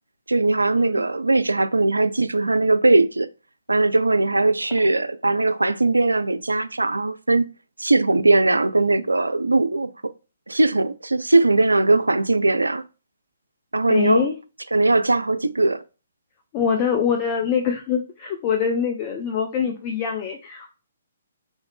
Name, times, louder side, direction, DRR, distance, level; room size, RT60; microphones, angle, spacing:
voice 1, 0.3-3.3 3.7-7.4 7.8-9.9 10.5-12.8 13.7-14.3 14.7-15.8, right 2 dB, 85° right, 0.4 m, -19 dB
voice 2, 13.9-14.4 16.5-20.7, left 7 dB, 30° left, 0.5 m, -24 dB
5.0 x 2.5 x 3.5 m
figure-of-eight pair, 130°, 0 cm